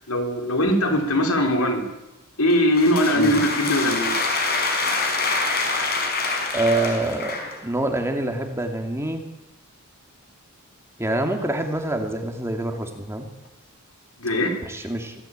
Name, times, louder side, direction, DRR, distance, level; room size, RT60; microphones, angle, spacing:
voice 1, 0.1-1.8 2.4-4.1 14.2-14.5, left 1 dB, 75° left, 3 dB, 4.7 m, -20 dB
sound 1, 2.5-7.6, left 3 dB, 45° left, 5.2 m, -25 dB
voice 2, 6.5-9.2 11.0-13.3 14.6-15.2, right 2 dB, 10° right, 4 dB, 2.5 m, -26 dB
25.0 x 16.0 x 8.9 m, 0.98 s
head